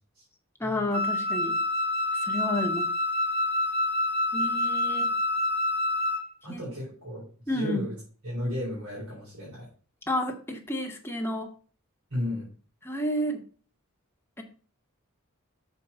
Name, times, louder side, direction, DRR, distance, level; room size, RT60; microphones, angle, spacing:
voice 1, 0.6-1.6 2.2-2.9 4.3-5.1 6.5-6.6 7.5-7.8 10.1-11.5 12.8-13.4 14.4-14.5, left 1 dB, 10° left, 2 dB, 1.2 m, -30 dB
Wind instrument woodwind instrument, 0.9-6.3, left 2 dB, 30° right, 2.0 m, -27 dB
voice 2, 6.4-7.9 8.2-9.7 12.1-12.5, left 1 dB, 70° right, -6 dB, 3.8 m, -34 dB
6.8 x 4.6 x 6.7 m, 0.40 s
head